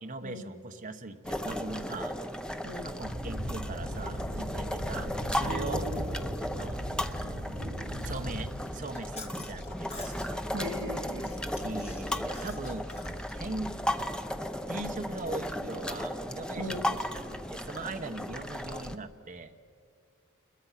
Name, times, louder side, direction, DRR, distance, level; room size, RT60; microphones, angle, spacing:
voice 1, 0.0-2.1 2.8-5.9 6.4-6.8 8.0-10.4 11.6-13.8 14.7-17.0 17.3-19.5, right 2 dB, 35° right, 6 dB, 1.0 m, -40 dB
sound 1, 1.2-19.0, left 1 dB, 5° left, 0.7 m, -35 dB
sound 2, 3.0-8.6, equal, 60° right, 5.2 m, -37 dB
voice 2, 5.4-6.0 10.5-11.2 16.6-16.8, right 1 dB, 80° right, 1 dB, 2.7 m, -38 dB
Chewing mastication, 8.6-14.0, left 1 dB, 30° left, 2.1 m, -45 dB
29.5 x 22.0 x 5.8 m, 2.4 s
head